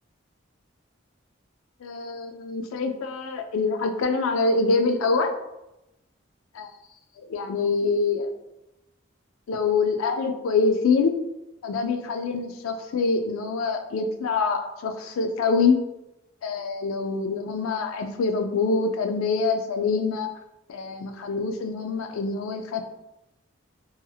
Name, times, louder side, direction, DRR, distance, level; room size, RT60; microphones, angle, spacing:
voice 1, 1.8-5.3 6.5-6.7 7.3-8.3 9.5-11.1 11.6-15.8 16.4-20.3 20.7-22.8, left 4 dB, 90° left, 6 dB, 0.3 m, -25 dB
2.7 x 2.7 x 2.3 m, 0.92 s
head